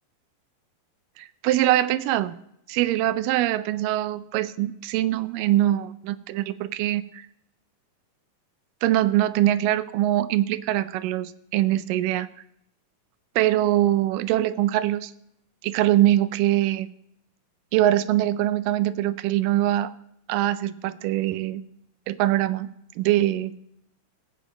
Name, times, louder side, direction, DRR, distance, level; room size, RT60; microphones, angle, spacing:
voice 1, 1.2-2.4 2.7-7.2 8.8-12.3 13.4-15.1 15.6-16.9 17.7-19.9 20.3-21.6 22.1-22.7 23.0-23.5, right 14 dB, 85° right, 14 dB, 2.2 m, -23 dB
16.5 x 8.7 x 3.8 m, 0.77 s
omnidirectional pair, 3.9 m